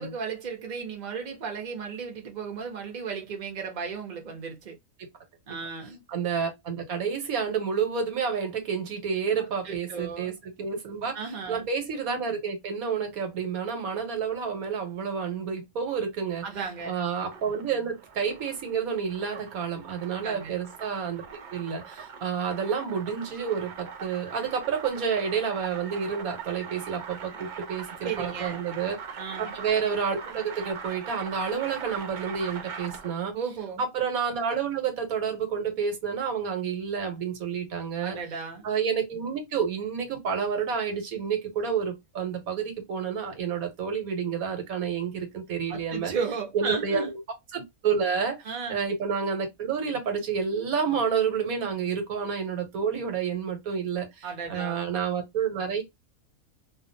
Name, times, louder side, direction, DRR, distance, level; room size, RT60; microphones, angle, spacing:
voice 1, 0.0-4.8 5.5-6.0 9.4-10.3 11.1-11.7 16.4-17.0 20.2-20.6 28.0-28.6 29.2-29.6 33.3-33.8 38.0-38.6 45.7-47.1 48.4-48.8 54.2-54.9, right 5 dB, 40° right, 0.8 m, -35 dB
voice 2, 6.1-16.4 16.9-21.2 21.5-29.0 29.4-33.3 33.8-38.2 38.6-46.1 46.5-47.1 47.5-48.4 48.7-55.8, right 6 dB, 85° right, 1.3 m, -29 dB
sound 1, 16.6-33.3, right 6 dB, 70° right, 0.4 m, -41 dB
2.5 x 2.4 x 2.6 m
omnidirectional pair, 1.5 m